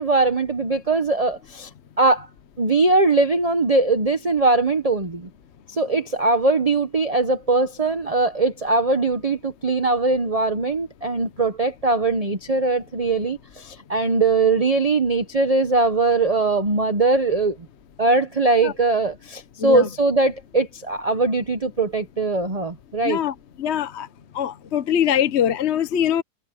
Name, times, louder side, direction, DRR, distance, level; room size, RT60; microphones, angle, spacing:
voice 1, 0.0-1.7 2.0-2.3 2.6-5.3 5.7-17.6 18.0-23.2, right 3 dB, 25° right, 0.8 m, -21 dB
voice 2, 23.0-24.1 24.3-26.2, left 9 dB, 50° left, 0.9 m, -23 dB
omnidirectional pair, 2.1 m